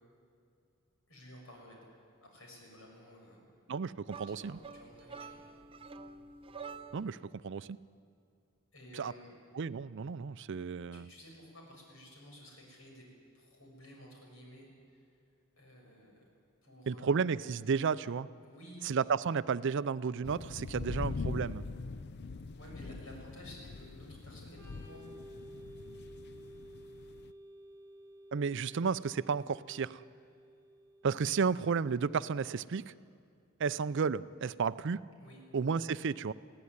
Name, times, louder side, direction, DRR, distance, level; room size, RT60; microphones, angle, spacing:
voice 1, 1.1-1.8 2.2-3.5 4.2-5.4 8.7-9.3 10.9-13.0 13.3-15.1 15.6-16.3 16.6-17.3 18.4-18.9 20.9-21.0 22.6-25.1 35.2-35.4, equal, 70° left, 0 dB, 6.7 m, -53 dB
voice 2, 3.7-4.6 6.9-7.8 9.0-9.1 9.5-11.1 16.9-18.3 18.8-21.6 28.3-30.0 31.0-32.9 33.6-35.0 35.5-36.3, right 5 dB, 60° right, 17 dB, 0.5 m, -32 dB
sound 1, 4.1-7.2, right 5 dB, 25° right, 0.8 m, -48 dB
sound 2, 20.2-27.3, left 3 dB, 55° left, 0.5 m, -42 dB
Organ, 24.5-32.0, equal, 15° left, 8.0 m, -53 dB
21.5 x 16.0 x 9.6 m, 2.4 s
head